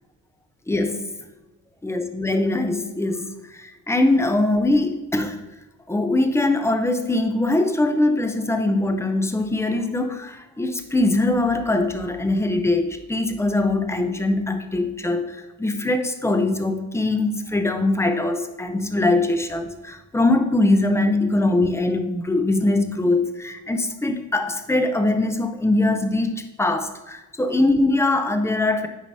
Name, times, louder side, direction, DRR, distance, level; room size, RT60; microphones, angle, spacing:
voice 1, 0.7-1.1 1.8-5.4 5.9-28.9, left 2 dB, 10° left, 7 dB, 0.6 m, -22 dB
8.7 x 4.9 x 2.7 m, 1.1 s
cardioid pair, 90°, 30 cm